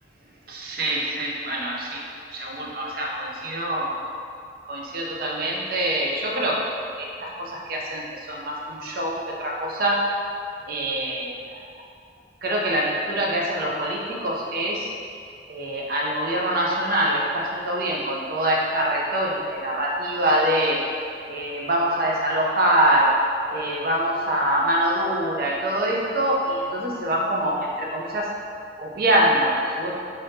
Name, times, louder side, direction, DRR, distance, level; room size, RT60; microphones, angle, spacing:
voice 1, 0.5-2.0 2.3-4.0 4.7-6.6 7.0-10.1 10.7-11.3 12.4-14.9 15.5-20.8 21.3-23.1 23.5-28.3 28.8-30.0, right 1 dB, 50° right, -2 dB, 0.4 m, -24 dB
2.6 x 2.5 x 3.4 m, 2.4 s
head